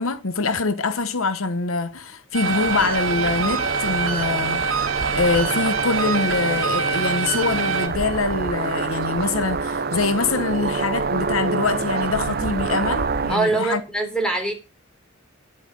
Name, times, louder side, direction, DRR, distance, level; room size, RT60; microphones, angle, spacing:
voice 1, 0.0-4.8 5.1-13.8, left 3 dB, 75° left, 1.1 m, -24 dB
sound 1, 2.3-7.9, right 5 dB, 75° right, 2.9 m, -25 dB
sound 2, 2.4-13.4, right 4 dB, 45° right, 0.8 m, -26 dB
voice 2, 13.3-14.5, right 2 dB, 5° left, 3.9 m, -23 dB
10.5 x 8.7 x 6.3 m
head